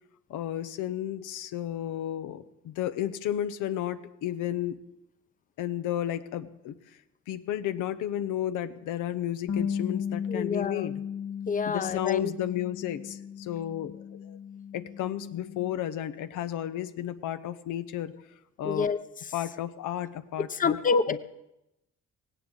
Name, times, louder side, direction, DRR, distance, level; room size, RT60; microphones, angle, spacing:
voice 1, 0.3-4.8 5.6-6.8 7.3-11.0 11.7-14.4 14.7-18.1 18.6-18.9 19.3-20.8 21.1-21.2, left 11 dB, 90° left, 11 dB, 0.9 m, -32 dB
Bass guitar, 9.5-15.7, left 7 dB, 60° left, 1.1 m, -36 dB
voice 2, 10.3-10.9 11.5-12.3 18.6-19.0 20.4-21.2, left 5 dB, 25° left, 12 dB, 0.8 m, -27 dB
18.0 x 17.0 x 3.8 m, 0.87 s
cardioid pair, 90°, 30 cm